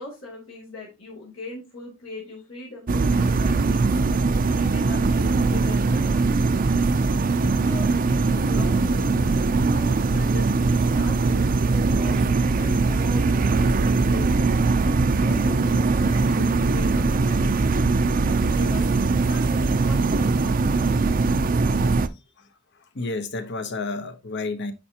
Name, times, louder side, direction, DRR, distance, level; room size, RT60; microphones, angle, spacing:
voice 1, 0.0-3.9 4.5-6.4 7.4-9.2 9.7-14.3 15.1-17.4 18.2-21.0 21.9-22.3, left 2 dB, 80° left, 2.8 m, -40 dB
sound 1, 2.9-22.1, right 3 dB, 40° right, 0.5 m, -21 dB
voice 2, 22.4-24.7, left 3 dB, 60° left, 0.9 m, -31 dB
10.5 x 4.4 x 2.8 m
head